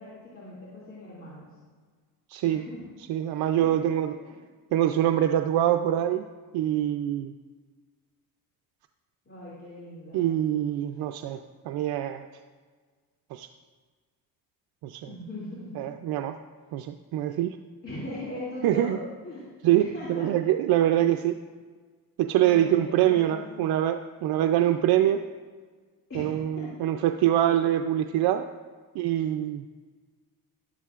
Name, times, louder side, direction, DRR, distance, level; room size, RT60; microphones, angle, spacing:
voice 1, 0.0-1.5 2.4-2.9 3.6-3.9 4.3-4.4 9.3-10.3 15.1-15.8 17.8-19.5 19.8-20.3 22.4-23.7 26.1-26.7, left 1 dB, 35° left, -7 dB, 2.6 m, -40 dB
voice 2, 2.3-2.7 3.1-4.2 4.7-6.3 6.5-7.3 10.1-11.4 11.7-12.3 13.3-13.5 14.8-15.1 15.8-16.4 16.7-17.6 18.6-19.0 19.6-21.4 22.2-25.2 26.1-28.4 28.9-29.6, right 12 dB, 90° right, 7 dB, 0.5 m, -24 dB
13.0 x 11.5 x 2.4 m, 1.5 s
cardioid pair, 110°, 37 cm